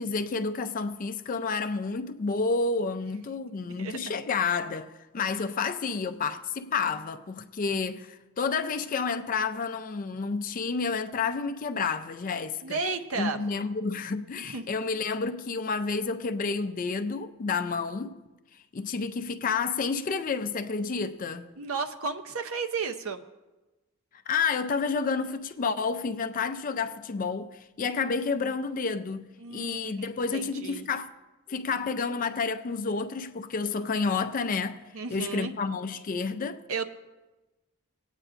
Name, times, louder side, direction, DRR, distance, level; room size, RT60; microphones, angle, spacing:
voice 1, 0.0-12.8 13.1-18.1 18.7-21.5 24.3-31.1 31.5-34.8 35.1-36.6, left 4 dB, 35° left, 0.4 m, -30 dB
voice 2, 3.8-4.2 12.6-13.4 14.5-14.6 21.6-23.2 29.4-30.1 30.3-30.9 34.9-35.5 36.7-36.8, right 4 dB, 65° right, 0.6 m, -33 dB
19.5 x 8.9 x 2.5 m
head